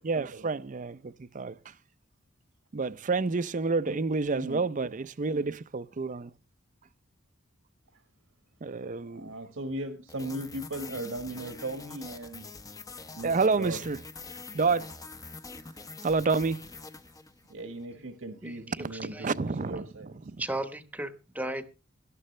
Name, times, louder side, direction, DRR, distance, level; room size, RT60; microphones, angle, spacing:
voice 1, 0.0-1.6 2.7-6.3 8.6-9.3 13.2-14.0 14.5-14.9 16.0-16.6 19.0-19.8 20.3-20.4, right 4 dB, 40° right, 0.5 m, -29 dB
voice 2, 9.1-12.5 13.1-13.8 17.5-20.1, right 1 dB, 85° right, 1.5 m, -38 dB
sound 1, 10.1-17.6, left 3 dB, 20° left, 0.7 m, -45 dB
voice 3, 18.4-19.3 20.4-21.7, right 1 dB, 10° right, 1.0 m, -36 dB
18.0 x 12.5 x 3.2 m
head